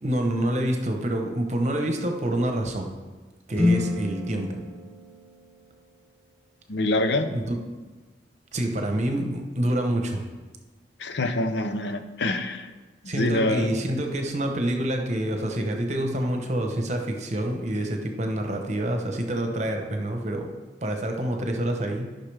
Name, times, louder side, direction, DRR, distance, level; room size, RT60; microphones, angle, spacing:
voice 1, 0.0-2.9 3.5-4.6 7.3-7.6 8.5-10.2 13.1-20.5 20.8-22.2, right 1 dB, 40° right, 3 dB, 0.9 m, -27 dB
sound 1, 3.5-5.9, left 2 dB, 10° left, 2.9 m, -28 dB
voice 2, 6.7-7.3 11.0-12.7 13.0-13.8, left 1 dB, 80° left, 8 dB, 0.7 m, -25 dB
13.5 x 5.8 x 3.4 m, 1.3 s
head